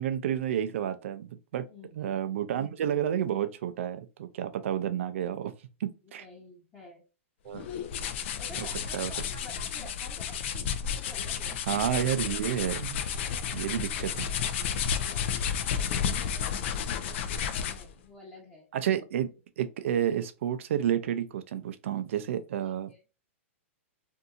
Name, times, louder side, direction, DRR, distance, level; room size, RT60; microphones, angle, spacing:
voice 1, 0.0-1.7 1.9-5.5 5.8-6.2 7.4-7.7 8.6-8.7 8.9-9.1 11.7-13.0 13.5-14.3 18.7-19.3 19.6-22.9, right 10 dB, 65° right, 0.5 m, -30 dB
voice 2, 1.6-2.2 6.0-7.0 8.4-11.9 13.3-13.8 14.6-16.6 17.3-18.7 22.6-23.0, left 2 dB, 15° left, 0.9 m, -50 dB
sound 1, 7.5-17.9, left 7 dB, 60° left, 0.4 m, -32 dB
2.7 x 2.7 x 2.3 m
hypercardioid pair, 130°, 7 cm